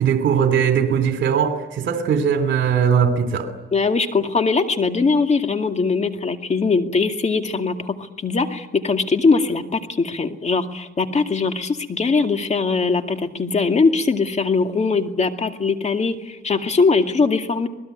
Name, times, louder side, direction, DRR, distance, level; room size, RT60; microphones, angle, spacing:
voice 1, 0.0-3.5, right 7 dB, 70° right, 9 dB, 2.8 m, -19 dB
voice 2, 3.7-17.7, left 4 dB, 35° left, 6 dB, 2.3 m, -21 dB
26.5 x 20.0 x 9.2 m, 1.0 s
cardioid pair, 90°, 20 cm